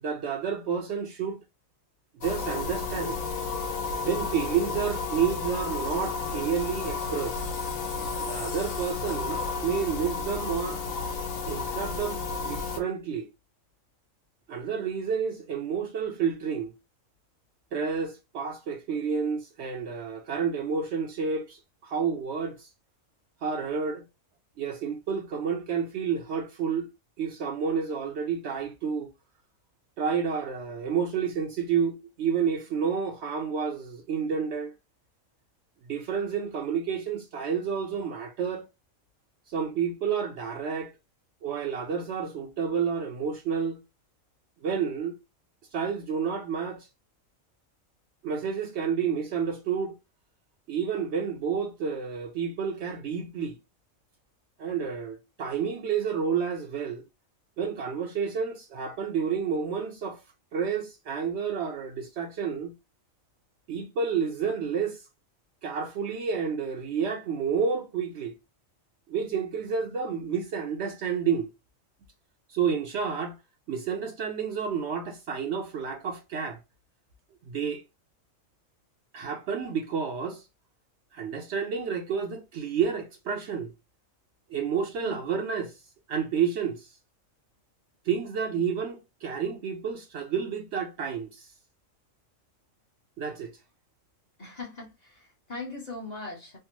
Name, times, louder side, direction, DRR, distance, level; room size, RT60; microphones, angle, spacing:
voice 1, 0.0-1.4 2.1-3.2 4.1-7.4 8.2-10.8 11.5-13.3 14.5-16.7 17.7-22.7 23.4-24.0 24.6-26.9 27.2-29.1 30.0-34.7 35.8-38.6 39.5-40.9 41.4-43.8 44.6-45.1 45.7-46.9 48.2-50.0 50.7-53.6 54.6-57.0 57.6-60.2 60.5-62.7 63.7-65.0 65.6-68.3 69.1-71.5 72.5-73.4 73.7-76.6 77.5-77.8 79.1-80.5 81.1-83.7 84.5-85.8 86.1-86.9 88.0-91.5 93.2-93.5, right 6 dB, 65° right, 0.8 m, -30 dB
sound 1, 2.2-12.8, left 4 dB, 80° left, 1.2 m, -32 dB
voice 2, 94.4-96.6, left 3 dB, 35° left, 0.8 m, -40 dB
3.3 x 2.0 x 2.9 m
omnidirectional pair, 1.4 m